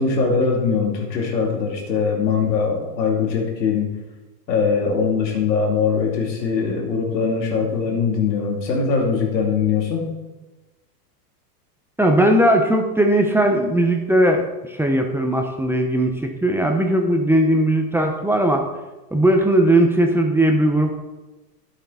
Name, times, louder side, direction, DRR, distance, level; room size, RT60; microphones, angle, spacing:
voice 1, 0.0-3.9 4.5-10.1, left 5 dB, 85° left, 1 dB, 2.8 m, -21 dB
voice 2, 12.0-18.6 19.1-21.0, right 1 dB, 5° right, 3 dB, 0.9 m, -18 dB
10.0 x 8.0 x 4.2 m, 1.1 s
hypercardioid pair, 115°, 49 cm